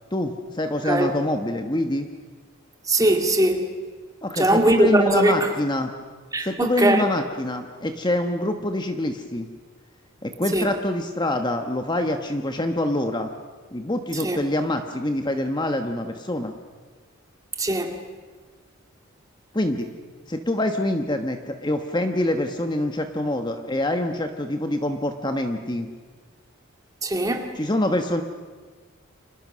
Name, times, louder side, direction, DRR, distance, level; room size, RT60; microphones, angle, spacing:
voice 1, 0.1-2.1 4.2-5.9 6.4-9.5 10.2-13.3 13.7-16.5 19.5-19.9 20.3-25.9 27.6-28.2, left 1 dB, 20° left, 1.1 m, -25 dB
voice 2, 2.9-3.7 4.4-5.5 6.3-7.1 10.5-10.7 14.1-14.4 17.6-18.0 27.0-27.5, right 1 dB, 15° right, 2.2 m, -20 dB
30.0 x 25.5 x 6.3 m
head